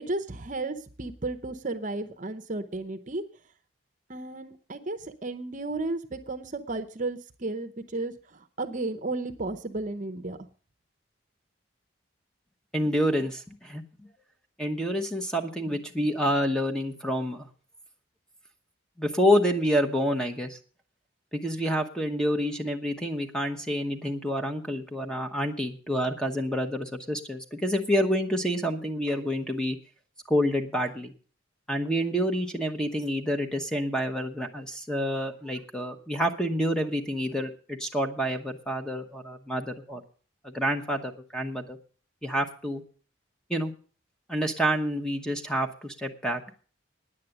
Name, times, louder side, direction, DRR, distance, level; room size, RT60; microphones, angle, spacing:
voice 1, 0.0-3.2 4.1-10.4, right 2 dB, 40° right, 10 dB, 0.8 m, -33 dB
voice 2, 12.7-13.8 14.6-17.5 19.0-20.6 21.3-29.8 30.3-31.1 31.7-40.0 40.4-41.8 42.2-42.8 43.5-43.7 44.3-46.4, equal, 5° left, 6 dB, 1.0 m, -28 dB
10.0 x 8.4 x 7.9 m, 0.42 s
head